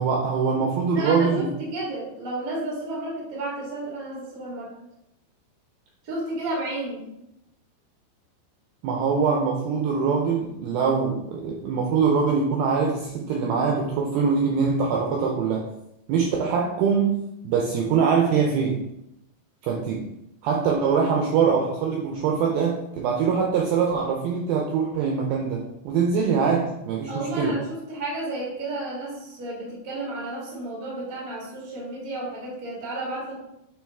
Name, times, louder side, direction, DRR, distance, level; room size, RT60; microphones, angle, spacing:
voice 1, 0.0-1.5 8.8-15.7 16.1-17.2 17.4-18.8 19.6-20.0 20.4-27.5, right 5 dB, 90° right, 0 dB, 2.1 m, -23 dB
voice 2, 0.9-4.7 6.0-7.0 27.1-33.3, right 2 dB, 40° right, -5 dB, 1.2 m, -32 dB
8.6 x 3.1 x 3.5 m, 0.84 s
omnidirectional pair, 5.1 m